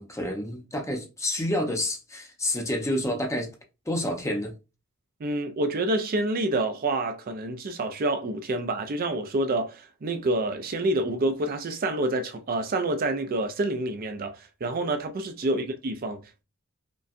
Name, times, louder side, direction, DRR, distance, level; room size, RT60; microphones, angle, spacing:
voice 1, 0.0-3.5 3.9-4.5 15.5-15.6, left 1 dB, 15° left, 0.7 m, -29 dB
voice 2, 5.2-16.4, right 2 dB, 40° right, 0.4 m, -28 dB
5.2 x 2.2 x 2.5 m
head